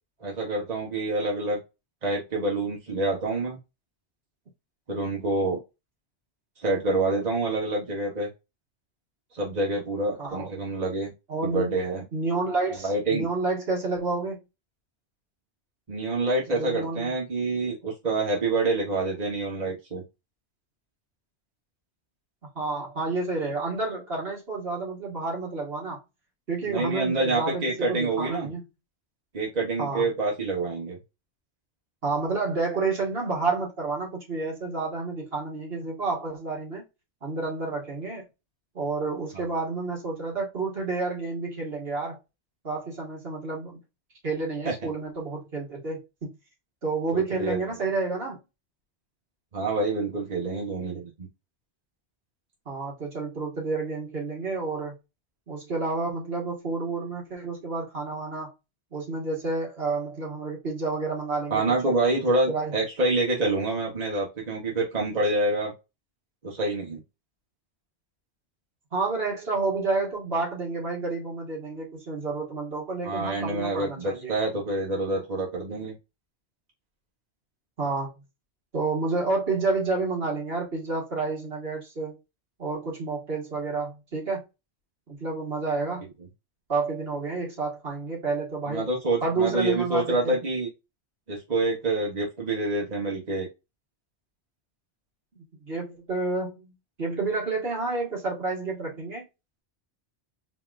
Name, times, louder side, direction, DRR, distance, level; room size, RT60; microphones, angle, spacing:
voice 1, 0.2-1.6 2.0-3.6 4.9-5.6 6.6-8.3 9.3-11.1 11.4-12.0 12.8-13.3 15.9-20.0 26.7-28.5 29.3-31.0 39.3-39.4 44.6-44.7 47.1-47.6 49.5-51.3 61.5-65.7 66.4-67.0 73.0-75.9 88.7-90.7 91.3-93.5, right 2 dB, 40° right, 1.3 m, -27 dB
voice 2, 10.2-10.5 11.3-11.8 12.1-14.4 16.5-17.1 22.6-26.0 26.5-28.6 29.8-30.1 32.0-36.8 37.2-38.2 38.7-42.2 42.6-43.8 44.2-46.4 46.8-48.4 52.7-55.0 55.5-58.5 58.9-61.9 62.5-62.7 68.9-74.4 77.8-78.1 78.7-82.2 82.6-84.5 85.1-86.1 86.7-88.9 89.2-90.4 95.3-96.7 97.0-99.3, right 3 dB, 60° right, 2.0 m, -30 dB
4.1 x 3.6 x 2.5 m
omnidirectional pair, 1.2 m